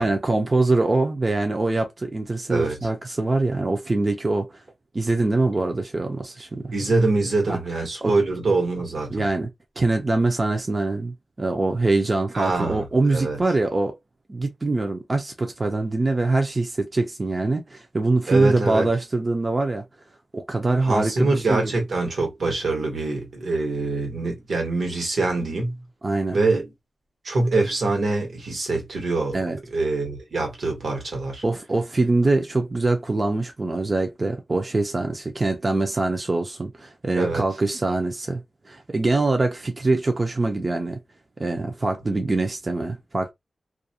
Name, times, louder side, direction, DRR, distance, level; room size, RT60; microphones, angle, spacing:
voice 1, 0.0-4.6 4.9-6.7 7.5-7.6 8.0-8.1 9.1-9.5 9.8-14.0 14.3-19.8 20.3-21.7 26.0-26.4 29.3-29.6 31.4-41.0 41.4-43.3, right 2 dB, 30° right, 0.4 m, -24 dB
voice 2, 6.7-9.2 12.3-13.4 18.3-18.9 20.8-25.8 26.3-26.7 27.2-29.4 29.7-31.4 37.1-37.4, right 3 dB, 75° right, 1.1 m, -24 dB
2.4 x 2.1 x 2.7 m
wide cardioid pair, 150°, 0 cm